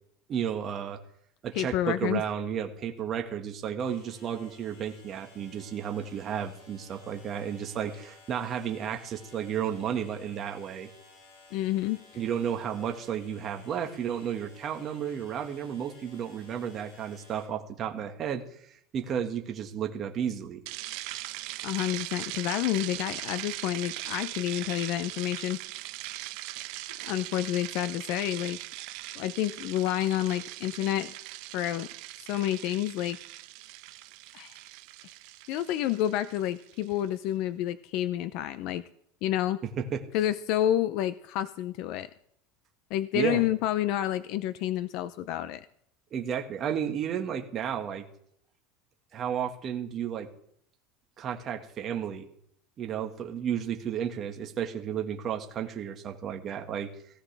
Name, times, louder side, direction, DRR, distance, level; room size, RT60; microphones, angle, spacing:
voice 1, 0.3-1.0 1.4-10.9 12.2-18.4 18.9-20.6 39.8-40.0 43.1-43.4 46.1-48.0 49.1-50.3 51.2-52.3 52.8-56.9, right 8 dB, 35° right, 3 dB, 1.8 m, -32 dB
voice 2, 1.6-2.2 11.5-12.2 21.6-25.6 27.0-28.6 29.1-31.1 31.5-31.9 32.2-33.2 34.3-34.6 35.5-38.8 39.2-39.6 40.1-42.1 42.9-45.7, left 13 dB, 60° left, 14 dB, 0.6 m, -29 dB
sound 1, 3.8-17.5, left 2 dB, 80° left, 6.6 m, -55 dB
sound 2, 20.7-36.9, right 18 dB, 65° right, 0.9 m, -40 dB
18.0 x 16.0 x 3.5 m, 0.69 s
supercardioid pair, 135°, 0 cm